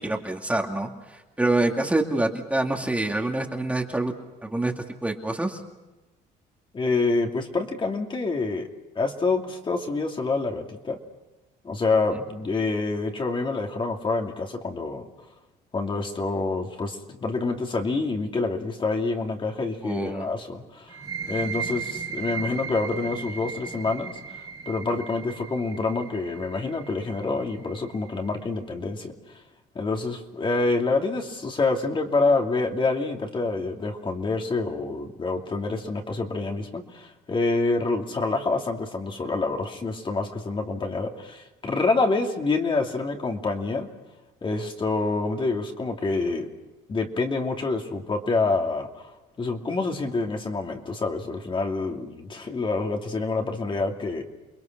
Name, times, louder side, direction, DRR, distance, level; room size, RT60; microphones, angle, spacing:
voice 1, 0.0-4.1 4.4-5.6 19.8-20.3, right 2 dB, 10° right, 2 dB, 2.4 m, -26 dB
voice 2, 6.7-8.7 8.9-11.0 11.6-15.1 15.7-21.0 21.3-29.4 29.7-43.9 44.4-46.5 46.9-49.0 49.4-54.3, left 3 dB, 30° left, 2 dB, 2.7 m, -27 dB
sound 1, 20.9-28.3, right 6 dB, 25° right, 3.0 m, -36 dB
29.5 x 21.5 x 6.1 m, 1.1 s
cardioid pair, 110°, 17 cm